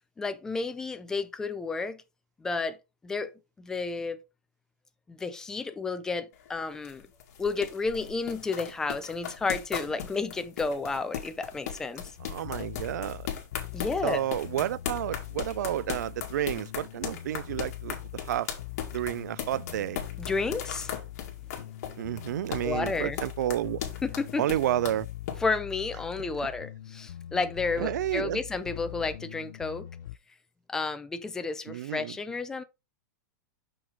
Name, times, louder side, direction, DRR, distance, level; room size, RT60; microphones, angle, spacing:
voice 1, 0.2-2.0 2.4-2.8 3.0-3.3 3.6-4.2 5.1-7.1 7.4-12.0 13.7-14.2 20.2-20.9 22.6-23.2 24.0-24.5 25.4-29.9 30.7-32.6, left 4 dB, 5° left, 0.4 m, -31 dB
sound 1, 6.3-25.4, left 9 dB, 55° left, 2.2 m, -38 dB
sound 2, 12.2-30.2, left 13 dB, 75° left, 0.5 m, -42 dB
voice 2, 12.2-13.3 14.0-18.5 18.9-20.0 22.0-23.8 24.4-25.1 27.8-28.4 31.7-32.2, right 12 dB, 65° right, 0.4 m, -31 dB
6.6 x 5.9 x 3.7 m
supercardioid pair, 175°, 10 cm